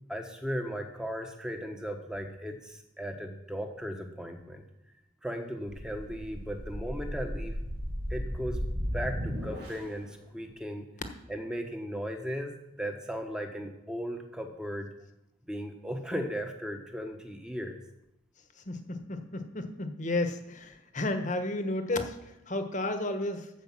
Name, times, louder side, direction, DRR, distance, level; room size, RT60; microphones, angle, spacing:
voice 1, 0.1-4.6 5.2-7.6 8.1-8.6 8.9-10.9 11.3-14.9 15.5-17.8, equal, 5° right, 4 dB, 1.1 m, -36 dB
sound 1, 5.7-10.0, equal, 50° right, 4.8 m, -35 dB
voice 2, 18.7-23.5, left 2 dB, 40° left, 7 dB, 1.1 m, -32 dB
14.0 x 5.1 x 7.5 m, 0.85 s
head